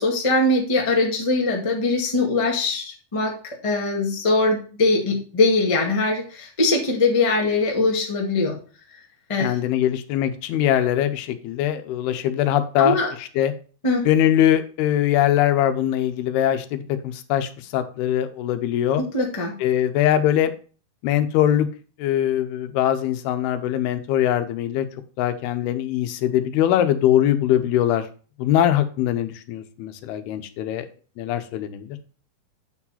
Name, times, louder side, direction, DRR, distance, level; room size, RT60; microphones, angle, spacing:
voice 1, 0.0-3.3 3.6-8.6 9.3-9.5 12.8-13.1 13.8-14.0 19.0-19.5, left 2 dB, 20° left, -1 dB, 0.8 m, -21 dB
voice 2, 9.4-13.5 14.1-19.0 19.6-20.5 21.0-21.7 22.0-24.9 25.2-28.1 28.4-30.9 31.2-32.0, left 11 dB, 85° left, 9 dB, 2.8 m, -22 dB
9.0 x 4.8 x 5.6 m, 0.39 s
omnidirectional pair, 4.4 m